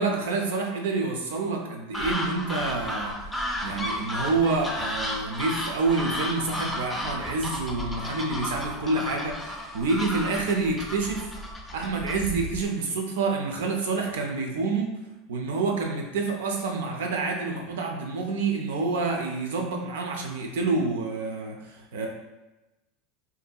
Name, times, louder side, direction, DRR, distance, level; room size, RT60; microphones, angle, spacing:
voice 1, 0.0-3.1 3.6-11.3 11.7-14.9 15.3-22.1, right 3 dB, 90° right, 1 dB, 0.5 m, -28 dB
sound 1, 1.9-12.7, left 1 dB, 5° left, 0.4 m, -33 dB
2.7 x 2.6 x 2.3 m, 1.0 s
supercardioid pair, 120°, 0 cm